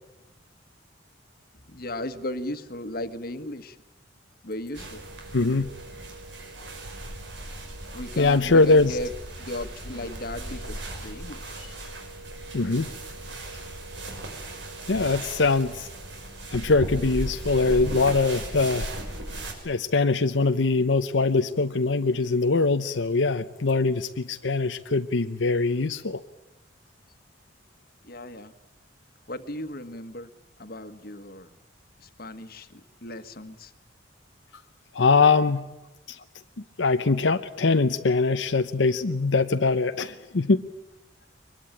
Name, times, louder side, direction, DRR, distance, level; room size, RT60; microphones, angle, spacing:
voice 1, 1.5-3.8 4.4-5.0 7.9-9.1 9.4-11.6 28.0-28.6 29.3-30.3 30.6-31.5 32.0-33.7 36.2-36.3, left 1 dB, 55° left, 10 dB, 1.5 m, -36 dB
sound 1, 4.7-19.5, right 1 dB, 75° right, 5.5 m, -37 dB
voice 2, 5.3-5.7 8.2-9.0 12.5-12.9 14.9-15.9 16.5-18.9 19.6-26.2 34.9-35.7 36.1-36.2 36.8-40.6, left 3 dB, 90° left, 8 dB, 0.8 m, -22 dB
23.5 x 21.5 x 9.1 m, 0.98 s
head